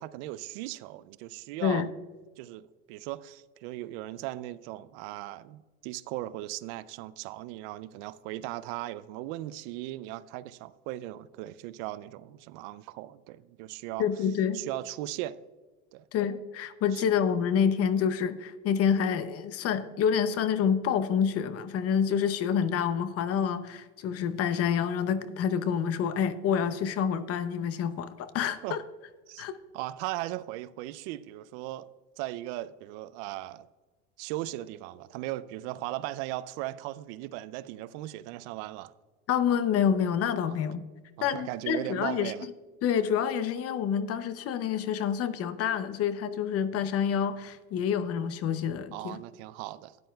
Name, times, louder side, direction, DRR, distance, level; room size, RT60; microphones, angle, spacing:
voice 1, 0.0-1.9 2.4-14.1 14.5-15.4 15.9-16.1 16.9-17.1 28.6-28.8 29.3-29.5 29.7-31.9 32.2-33.7 34.2-38.9 40.5-40.6 41.2-42.5 48.9-50.0, right 16 dB, 70° right, 0.5 m, -38 dB
voice 2, 14.0-14.6 16.1-28.8 29.4-29.5 39.3-40.8 41.2-42.3 42.8-49.2, left 7 dB, 40° left, 0.7 m, -28 dB
13.0 x 9.6 x 2.3 m
supercardioid pair, 120°, 36 cm